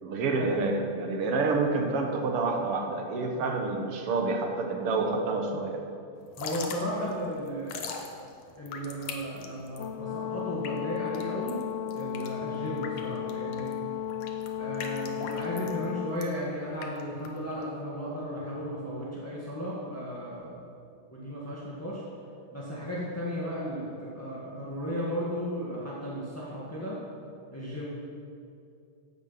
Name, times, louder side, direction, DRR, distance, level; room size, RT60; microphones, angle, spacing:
voice 1, 0.0-5.8, right 3 dB, 60° right, 3 dB, 1.7 m, -28 dB
Drip / Trickle dribble, 6.2-17.8, left 5 dB, 65° left, 2.0 m, -42 dB
voice 2, 6.4-8.1 8.6-11.6 11.9-13.8 14.6-20.7 21.1-22.0 22.5-27.0 27.5-27.9, equal, 10° left, -6 dB, 1.0 m, -35 dB
Brass instrument, 9.8-16.2, left 10 dB, 85° left, 1.4 m, -34 dB
16.0 x 8.1 x 5.9 m, 2.5 s
omnidirectional pair, 3.6 m